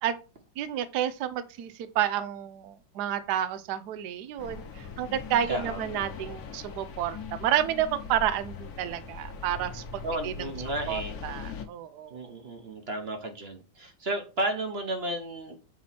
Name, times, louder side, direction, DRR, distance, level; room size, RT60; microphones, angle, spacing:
voice 1, 0.6-10.5 10.9-12.2, right 10 dB, 70° right, 13 dB, 1.2 m, -30 dB
sound 1, 4.4-11.6, left 5 dB, 60° left, 1.4 m, -41 dB
voice 2, 5.5-5.8 10.0-11.2 12.1-15.5, right 1 dB, 40° right, 5 dB, 1.2 m, -33 dB
7.3 x 4.5 x 4.2 m, 0.34 s
omnidirectional pair, 2.0 m